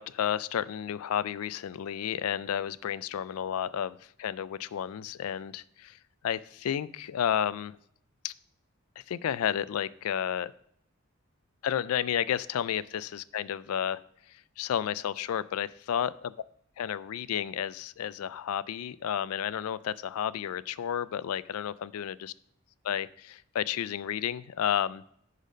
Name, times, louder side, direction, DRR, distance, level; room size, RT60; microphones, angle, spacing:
voice 1, 0.0-7.8 8.2-8.3 9.0-10.5 11.6-14.0 14.3-16.1 16.8-22.1 22.8-25.0, left 9 dB, 85° left, 18 dB, 0.4 m, -32 dB
10.0 x 4.1 x 5.1 m, 0.71 s
head